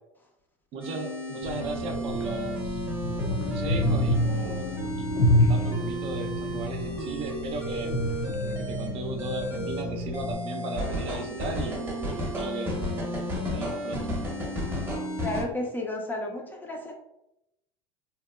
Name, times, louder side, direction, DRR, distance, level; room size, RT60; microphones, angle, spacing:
voice 1, 0.7-2.8 3.2-7.9 8.4-12.8 13.5-14.1, right 3 dB, 45° right, 3 dB, 0.5 m, -37 dB
sound 1, 0.8-15.4, equal, 15° right, 0.8 m, -33 dB
sound 2, 1.4-10.3, equal, 75° left, 0.5 m, -28 dB
voice 2, 15.2-16.9, left 2 dB, 15° left, 1 dB, 0.4 m, -32 dB
2.8 x 2.1 x 2.3 m, 0.86 s
supercardioid pair, 120°, 13 cm